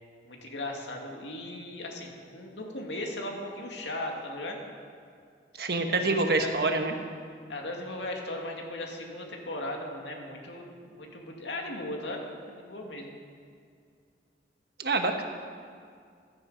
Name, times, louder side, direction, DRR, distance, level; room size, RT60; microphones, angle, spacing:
voice 1, 0.2-4.6 5.5-5.7 5.9-6.8 7.5-10.7 11.0-12.2 12.5-13.1, left 1 dB, 90° left, 1 dB, 2.4 m, -37 dB
voice 2, 5.6-6.9 14.8-15.3, right 3 dB, 60° right, 5 dB, 1.2 m, -26 dB
16.5 x 12.5 x 5.1 m, 2.2 s
head